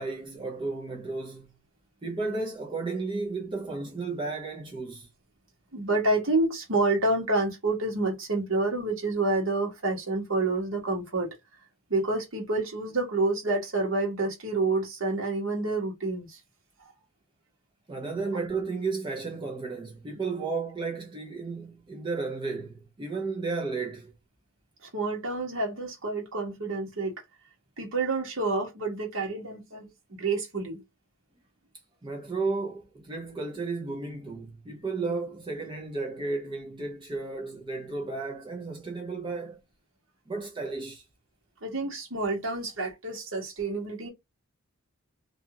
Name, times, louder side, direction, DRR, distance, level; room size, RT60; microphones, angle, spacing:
voice 1, 0.0-1.5 2.0-5.1 17.9-24.1 32.0-39.6 40.3-41.0, right 3 dB, 20° right, 0.5 m, -33 dB
voice 2, 5.7-11.3 11.9-16.4 16.8-16.9 24.9-27.1 27.8-30.8 41.6-44.1, right 2 dB, 70° right, 1.2 m, -28 dB
2.7 x 2.3 x 2.7 m
head